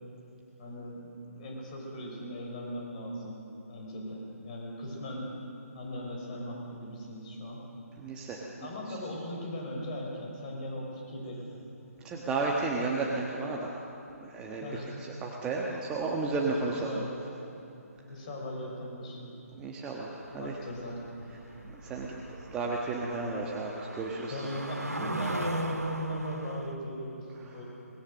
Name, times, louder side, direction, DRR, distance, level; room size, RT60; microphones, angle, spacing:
voice 1, 0.6-3.4 3.7-5.3 5.7-7.6 8.6-11.6 14.6-15.1 16.7-17.3 18.1-19.2 20.4-21.0 24.3-27.6, equal, 30° left, -1 dB, 5.8 m, -38 dB
voice 2, 8.0-8.4 12.0-13.7 14.2-14.7 15.2-17.0 19.6-20.5 21.7-22.1 22.5-24.4, right 3 dB, 10° right, -2 dB, 1.5 m, -32 dB
sound 1, 20.2-26.8, right 1 dB, 80° right, 1.8 m, -39 dB
24.5 x 20.5 x 6.6 m, 2.8 s
figure-of-eight pair, 145°, 8 cm